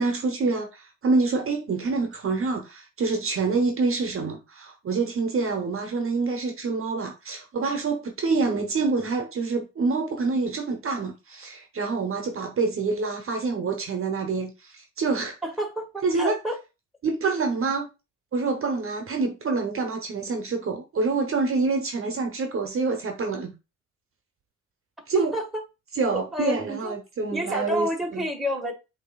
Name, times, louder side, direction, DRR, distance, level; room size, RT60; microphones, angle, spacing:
voice 1, 0.0-15.4 16.0-16.4 17.0-17.9 18.3-23.5 25.1-25.3 25.9-28.2, right 4 dB, 45° right, 0.9 m, -26 dB
voice 2, 15.4-16.6 25.1-25.5 26.1-26.9 27.3-28.7, equal, ahead, 1.6 m, -29 dB
8.2 x 2.8 x 2.3 m
cardioid pair, 90°, 30 cm